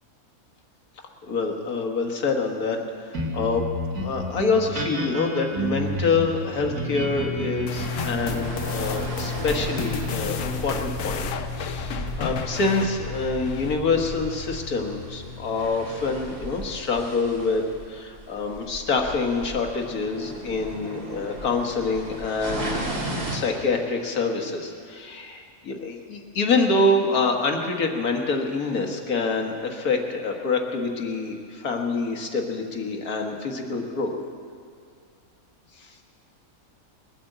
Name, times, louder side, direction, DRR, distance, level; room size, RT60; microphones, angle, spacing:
voice 1, 1.2-3.7 4.0-11.3 11.6-17.6 17.9-22.8 23.3-34.1, left 3 dB, 85° left, 3 dB, 1.9 m, -26 dB
sound 1, 3.1-17.8, left 1 dB, 80° right, 2.6 m, -32 dB
sound 2, 7.7-14.2, left 8 dB, 65° left, 1.0 m, -35 dB
sound 3, 7.7-23.4, right 1 dB, 60° right, 2.9 m, -36 dB
20.5 x 8.7 x 7.8 m, 2.3 s
omnidirectional pair, 1.5 m